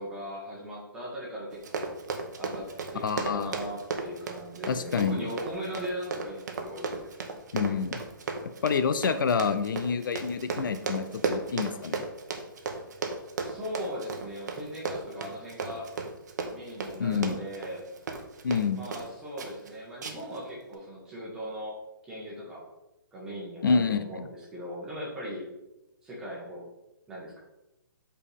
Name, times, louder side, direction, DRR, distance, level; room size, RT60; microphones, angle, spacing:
voice 1, 0.0-1.9 2.4-7.1 13.4-15.9 16.5-17.9 18.7-21.8 22.0-22.6 23.1-25.5 26.0-26.6 27.1-27.4, equal, 5° right, -6 dB, 1.4 m, -39 dB
Run, 1.5-19.1 19.4-19.7 20.0-20.4 20.7-20.8, right 4 dB, 55° right, 0.9 m, -35 dB
voice 2, 3.0-3.5 4.7-5.2 7.5-8.0 8.6-12.1 17.0-17.4 18.4-18.8 23.6-24.3, left 5 dB, 65° left, 11 dB, 0.5 m, -27 dB
7.1 x 4.5 x 3.5 m, 0.95 s
hypercardioid pair, 170°, 12 cm